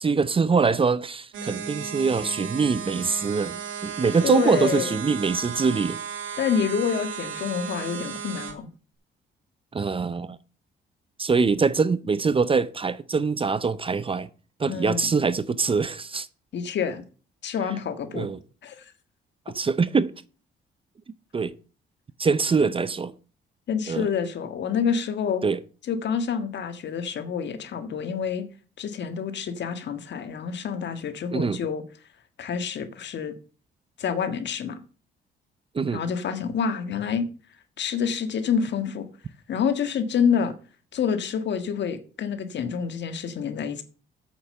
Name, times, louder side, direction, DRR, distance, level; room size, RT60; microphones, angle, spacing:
voice 1, 0.0-6.0 9.7-10.4 11.2-14.3 14.6-16.3 18.1-18.4 19.5-20.1 21.3-21.6 22.2-23.1 23.9-24.1 25.4-25.6 31.3-31.6 35.7-36.0, right 5 dB, 25° right, 0.6 m, -23 dB
sound 1, 1.3-8.5, right 7 dB, 80° right, 2.3 m, -35 dB
voice 2, 4.2-5.0 6.4-8.7 14.7-15.1 16.5-17.0 17.4-18.3 18.6-18.9 23.7-25.4 25.9-28.5 28.8-31.8 32.4-33.3 34.0-34.8 35.9-37.3 37.8-39.1 39.5-40.5 40.9-43.8, left 7 dB, 65° left, 1.6 m, -27 dB
8.6 x 7.1 x 6.8 m
cardioid pair, 90°, 20 cm